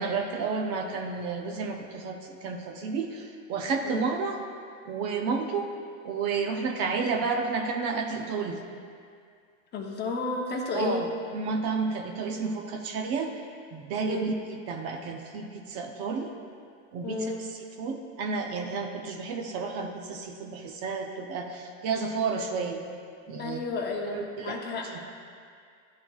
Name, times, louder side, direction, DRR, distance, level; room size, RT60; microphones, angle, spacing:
voice 1, 0.0-4.4 4.9-5.7 6.0-8.6 10.7-11.1 11.3-13.3 13.7-16.3 16.9-17.3 17.8-22.8 23.3-23.6 24.0-24.6, right 4 dB, 40° right, 3 dB, 0.6 m, -31 dB
voice 2, 9.7-11.0 14.1-14.3 17.0-17.4 23.4-24.9, left 3 dB, 25° left, 0 dB, 0.7 m, -32 dB
12.0 x 4.3 x 2.3 m, 2.3 s
supercardioid pair, 130°, 39 cm